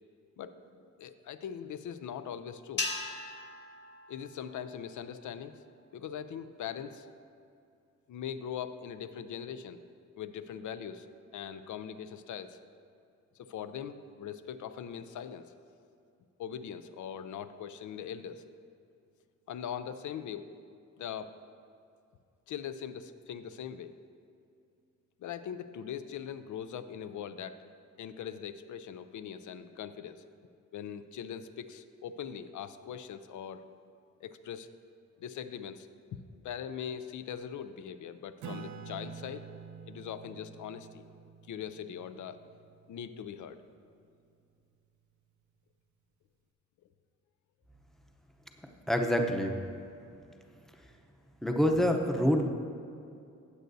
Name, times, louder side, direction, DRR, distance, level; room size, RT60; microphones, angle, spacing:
voice 1, 1.0-2.9 4.1-5.6 5.9-7.1 8.1-9.8 10.2-11.1 11.3-12.6 13.4-15.5 16.4-18.4 19.5-20.5 21.0-21.4 22.5-24.0 25.2-27.6 28.0-30.2 30.7-33.6 34.2-34.7 35.2-39.5 39.9-41.0 41.5-42.4 42.9-43.6, left 8 dB, 75° left, 11 dB, 0.5 m, -41 dB
sound 1, 2.8-5.2, left 3 dB, 35° left, 0.8 m, -39 dB
Acoustic guitar / Strum, 38.4-43.4, right 5 dB, 70° right, 0.6 m, -47 dB
voice 2, 48.9-49.6 51.4-52.5, equal, ahead, 3 dB, 0.7 m, -26 dB
15.5 x 7.9 x 2.7 m, 2.4 s
wide cardioid pair, 130°, 30 cm